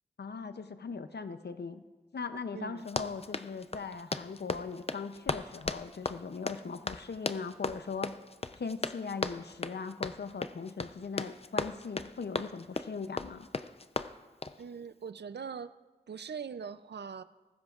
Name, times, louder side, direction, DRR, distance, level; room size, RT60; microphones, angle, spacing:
voice 1, 0.2-1.8 2.1-8.1 8.6-13.5, left 5 dB, 80° left, 10 dB, 0.6 m, -39 dB
voice 2, 2.5-2.9 14.6-15.7 16.1-17.2, right 6 dB, 90° right, 13 dB, 0.5 m, -41 dB
Run, 2.8-14.6, left 3 dB, 35° left, 0.5 m, -37 dB
18.0 x 15.0 x 2.4 m, 1.2 s
wide cardioid pair, 45°, 17 cm